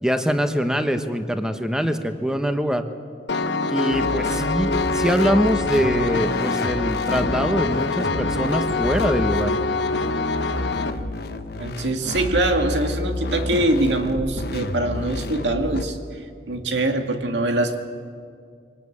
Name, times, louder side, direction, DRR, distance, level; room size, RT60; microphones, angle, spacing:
voice 1, 0.0-2.8 3.7-9.5, equal, 5° right, 7 dB, 1.2 m, -23 dB
Piano, 3.3-10.9, left 3 dB, 85° left, 1.1 m, -25 dB
sound 1, 3.9-15.9, left 2 dB, 60° left, 1.1 m, -30 dB
voice 2, 11.6-16.2 16.5-17.8, right 2 dB, 85° right, 5 dB, 2.1 m, -23 dB
24.0 x 19.5 x 8.6 m, 2.2 s
head